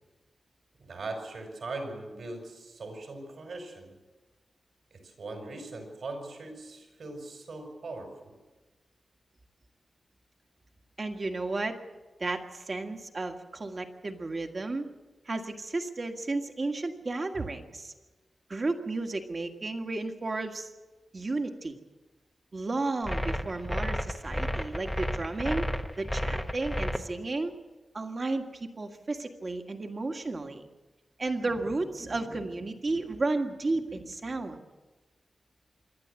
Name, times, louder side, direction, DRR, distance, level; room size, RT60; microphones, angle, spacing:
voice 1, 0.8-3.9 4.9-8.3, right 2 dB, 70° right, 3 dB, 5.4 m, -40 dB
voice 2, 11.0-11.8 12.2-14.9 15.3-17.9 18.5-20.7 21.1-21.8 22.5-25.7 26.0-27.5 27.9-30.7 31.2-34.6, right 2 dB, 35° right, 5 dB, 1.7 m, -33 dB
sound 1, 23.1-27.0, equal, 5° left, 0.9 m, -31 dB
27.0 x 11.5 x 8.3 m, 1.2 s
wide cardioid pair, 140°, 0 cm